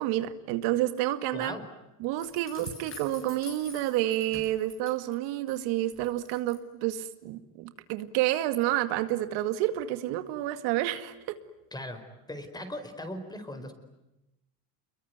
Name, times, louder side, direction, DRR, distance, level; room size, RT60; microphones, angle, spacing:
voice 1, 0.0-1.5 2.0-11.4, right 14 dB, 85° right, 10 dB, 2.1 m, -29 dB
voice 2, 1.3-1.7 11.7-12.0 12.3-13.7, left 1 dB, 10° left, 8 dB, 4.6 m, -38 dB
sound 1, 2.2-5.6 5.9-6.6, left 5 dB, 35° left, 7.3 m, -47 dB
28.5 x 22.5 x 9.3 m, 0.95 s
cardioid pair, 125°, 37 cm